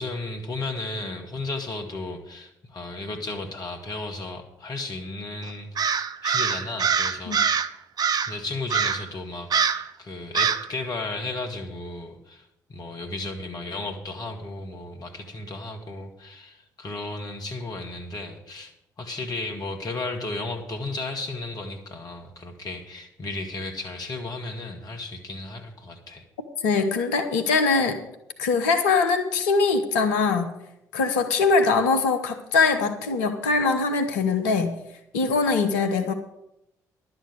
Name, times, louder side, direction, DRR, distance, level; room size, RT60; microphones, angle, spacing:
voice 1, 0.0-7.4 8.1-26.3, left 2 dB, 45° left, 3 dB, 2.0 m, -34 dB
Crow, 5.8-7.7 8.0-8.4 8.7-9.1 9.5-9.9 10.3-10.7, right 6 dB, 45° right, 0.7 m, -24 dB
voice 2, 26.6-28.0 28.4-30.6 30.9-34.7 35.1-36.1, left 4 dB, 75° left, 7 dB, 1.0 m, -22 dB
11.5 x 6.8 x 8.1 m, 0.83 s
figure-of-eight pair, 45°, 9 cm